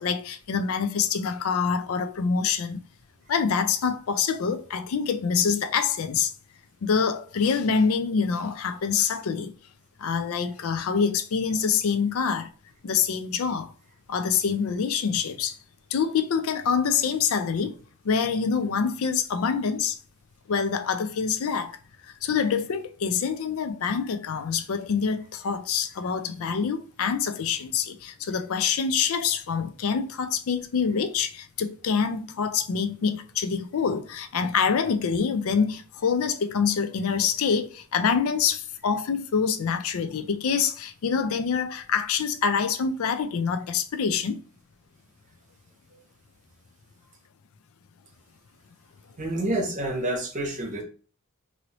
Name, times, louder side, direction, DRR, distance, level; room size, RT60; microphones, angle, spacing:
voice 1, 0.0-2.8 3.3-6.3 6.8-9.5 10.0-12.5 12.8-13.7 14.1-15.6 15.9-17.8 18.0-20.0 20.5-21.8 22.0-44.4, left 6 dB, 75° left, 0.4 m, -26 dB
voice 2, 49.2-50.8, right 1 dB, 35° right, 0.8 m, -28 dB
3.0 x 2.7 x 2.9 m
head